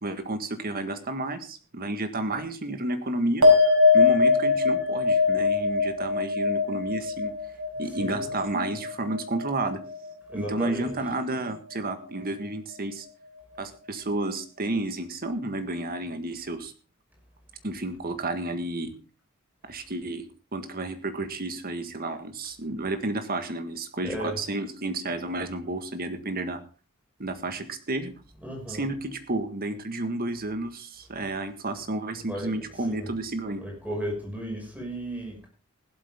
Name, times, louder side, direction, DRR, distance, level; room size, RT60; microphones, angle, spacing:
voice 1, 0.0-7.3 7.8-9.8 10.3-13.1 13.6-16.7 17.6-18.9 19.7-20.3 20.5-26.6 27.2-28.1 28.7-33.6, right 2 dB, 45° right, 8 dB, 1.7 m, -31 dB
sound 1, 3.4-10.1 10.4-11.0, left 4 dB, 70° right, 4.8 m, -23 dB
voice 2, 8.0-8.3 10.3-11.0 24.0-24.4 28.4-28.8 32.3-32.6 32.9-33.1 33.6-35.5, right 1 dB, 5° right, 0 dB, 6.2 m, -34 dB
16.0 x 12.0 x 3.7 m, 0.36 s
head